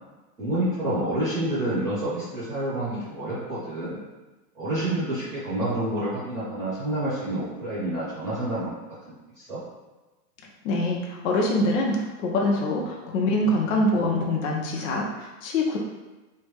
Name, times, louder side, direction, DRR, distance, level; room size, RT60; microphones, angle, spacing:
voice 1, 0.4-4.0 4.5-8.8 9.1-9.6, right 1 dB, 5° right, -13 dB, 0.6 m, -28 dB
voice 2, 10.6-15.8, left 1 dB, 55° left, -1 dB, 0.6 m, -24 dB
3.1 x 2.1 x 3.2 m, 1.1 s
supercardioid pair, 165°, 47 cm